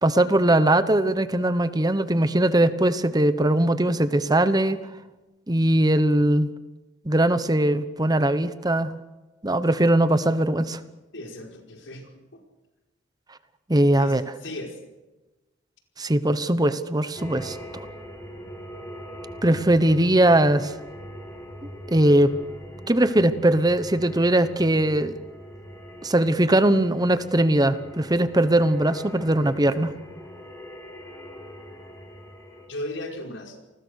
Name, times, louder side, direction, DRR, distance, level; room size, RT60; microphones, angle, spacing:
voice 1, 0.0-4.8 5.5-6.5 7.0-8.9 9.4-10.8 13.7-14.2 16.0-17.9 19.4-20.7 21.6-22.3 22.9-25.1 26.0-29.9, right 1 dB, 20° right, 12 dB, 1.0 m, -20 dB
voice 2, 11.1-12.2 14.0-14.8 32.7-33.6, left 1 dB, 85° left, 2 dB, 5.0 m, -36 dB
sound 1, 17.1-32.7, equal, 15° left, 5.4 m, -42 dB
29.0 x 20.0 x 6.6 m, 1.1 s
head